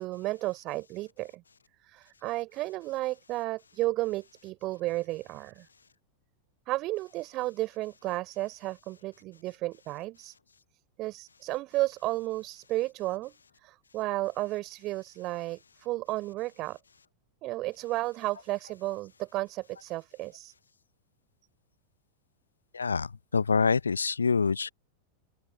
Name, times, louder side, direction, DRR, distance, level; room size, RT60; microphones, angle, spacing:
voice 1, 0.0-1.4 1.8-5.7 6.7-10.3 11.0-13.4 13.6-16.8 17.4-20.5, right 18 dB, 40° right, 4.2 m, -33 dB
voice 2, 22.7-24.7, left 5 dB, 75° left, 0.8 m, -26 dB
open air
figure-of-eight pair, 90°, 0 cm